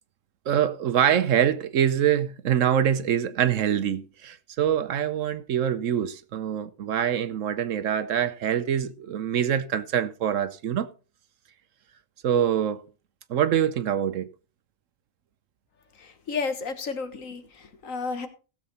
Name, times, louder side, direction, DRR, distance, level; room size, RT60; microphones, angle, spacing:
voice 1, 0.5-10.9 12.2-12.8 13.3-14.3, right 9 dB, 65° right, 1.0 m, -24 dB
voice 2, 16.0-18.3, left 4 dB, 65° left, 1.7 m, -32 dB
16.5 x 7.4 x 4.1 m
omnidirectional pair, 1.5 m